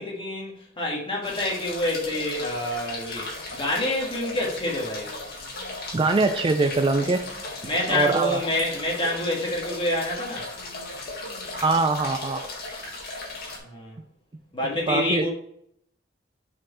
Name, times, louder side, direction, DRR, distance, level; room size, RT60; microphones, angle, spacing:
voice 1, 0.0-3.3 3.5-5.1 7.6-10.4 13.6-14.0 14.5-15.3, left 1 dB, 30° left, -2 dB, 1.7 m, -27 dB
sound 1, 1.2-13.6, left 2 dB, 55° left, 1.7 m, -36 dB
voice 2, 5.9-7.2 7.9-8.4 11.5-12.4 14.9-15.3, right 3 dB, 25° right, 7 dB, 0.4 m, -22 dB
6.3 x 4.4 x 4.3 m, 0.68 s
head